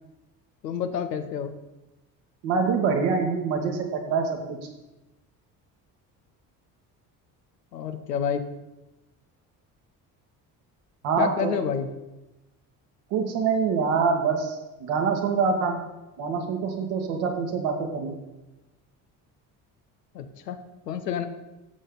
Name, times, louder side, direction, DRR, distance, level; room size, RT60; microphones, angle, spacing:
voice 1, 0.6-1.5 7.7-8.4 11.2-11.9 20.1-20.6 20.9-21.3, left 8 dB, 85° left, 8 dB, 0.9 m, -28 dB
voice 2, 2.4-4.6 11.0-11.5 13.1-15.8 16.2-18.2, right 5 dB, 65° right, 2 dB, 2.0 m, -25 dB
12.5 x 8.1 x 4.0 m, 1.0 s
hypercardioid pair, 50°, 48 cm